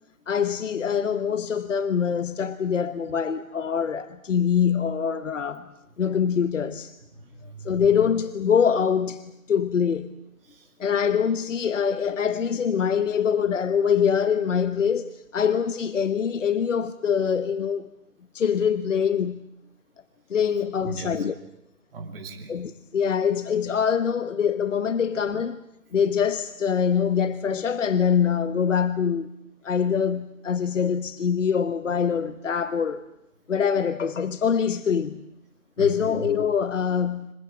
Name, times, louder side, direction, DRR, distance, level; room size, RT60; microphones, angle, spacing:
voice 1, 0.3-5.7 6.0-6.9 7.6-10.1 10.8-17.9 18.3-19.4 20.3-21.4 22.5-25.6 25.9-29.3 29.6-33.0 33.5-35.2 35.8-37.3, left 7 dB, 60° left, 1.1 m, -24 dB
voice 2, 7.2-7.8 10.5-10.6 20.9-21.1 21.9-22.5 35.8-36.3, right 3 dB, 40° right, 4.3 m, -37 dB
26.5 x 22.0 x 8.4 m
figure-of-eight pair, 150°, 43 cm